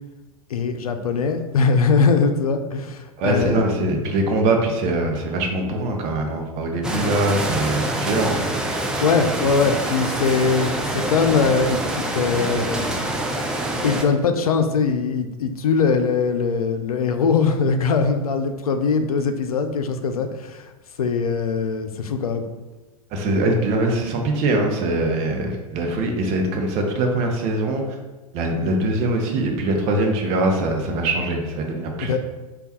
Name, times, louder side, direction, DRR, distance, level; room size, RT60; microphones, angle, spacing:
voice 1, 0.5-3.7 9.0-12.8 13.8-20.6 21.0-22.4 32.0-32.2, left 5 dB, 80° left, 7 dB, 0.4 m, -21 dB
voice 2, 3.2-8.4 23.1-28.0 28.3-32.2, right 2 dB, 40° right, 3 dB, 0.7 m, -22 dB
Industrial ambiance, 6.8-14.0, right 1 dB, 5° right, 0.3 m, -25 dB
3.4 x 2.3 x 4.1 m, 1.1 s
figure-of-eight pair, 95°, 18 cm